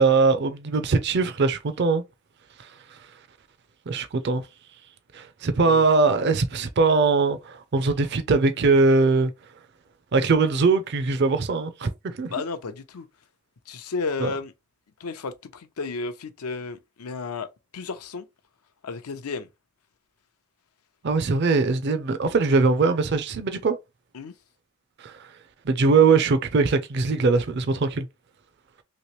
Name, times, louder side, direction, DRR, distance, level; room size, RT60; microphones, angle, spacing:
voice 1, 0.0-2.0 2.6-2.7 3.9-4.5 5.1-9.3 10.1-12.3 14.2-14.3 21.0-23.8 25.0-25.3 25.7-28.1, right 4 dB, 50° right, 0.4 m, -21 dB
voice 2, 12.3-13.1 13.7-14.5 15.0-17.5 17.7-18.3 18.8-19.5 24.1-24.3, left 4 dB, 85° left, 0.6 m, -33 dB
3.0 x 2.9 x 3.0 m
head